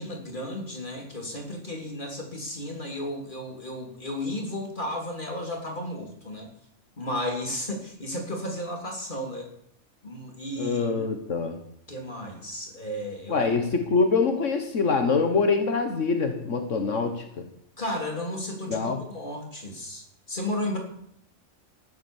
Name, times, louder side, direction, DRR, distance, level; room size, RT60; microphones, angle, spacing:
voice 1, 0.0-6.5 7.0-9.5 10.0-10.9 11.9-13.5 17.8-20.8, left 1 dB, 40° left, 1 dB, 3.8 m, -33 dB
voice 2, 10.6-11.6 13.3-17.5 18.7-19.0, left 4 dB, 75° left, 6 dB, 1.8 m, -25 dB
14.0 x 11.5 x 7.3 m, 0.70 s
omnidirectional pair, 1.3 m